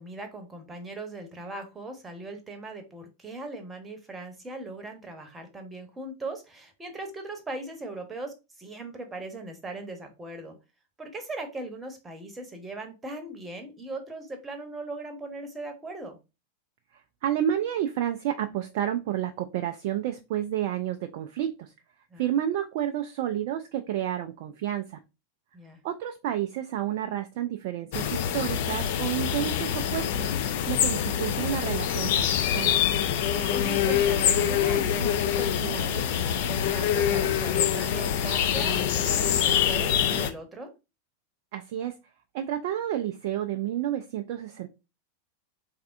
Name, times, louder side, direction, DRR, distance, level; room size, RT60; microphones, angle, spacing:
voice 1, 0.0-10.5 11.0-16.2 22.1-22.2 25.5-25.8 33.5-40.7, right 2 dB, 15° right, 5 dB, 0.9 m, -39 dB
voice 2, 17.2-21.7 22.2-25.0 25.8-30.3 30.7-32.8 41.5-41.9 42.3-44.7, right 11 dB, 50° right, 6 dB, 0.3 m, -30 dB
sound 1, 27.9-40.3, left 9 dB, 50° left, 0.4 m, -25 dB
3.5 x 3.2 x 2.5 m, 0.27 s
figure-of-eight pair, 90°, 0 cm